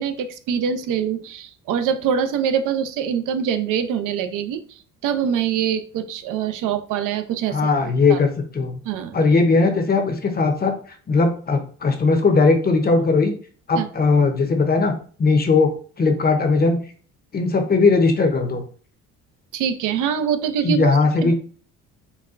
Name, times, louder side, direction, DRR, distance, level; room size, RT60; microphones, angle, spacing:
voice 1, 0.0-7.6 8.1-8.2 8.8-9.2 13.8-13.9 19.5-21.3, right 8 dB, 70° right, 9 dB, 0.5 m, -24 dB
voice 2, 7.5-8.3 8.5-8.8 9.1-10.7 11.1-13.3 13.7-14.9 15.2-16.8 17.3-18.6 20.6-21.3, left 4 dB, 30° left, 6 dB, 0.7 m, -18 dB
4.0 x 2.2 x 2.4 m, 0.43 s
supercardioid pair, 75°, 32 cm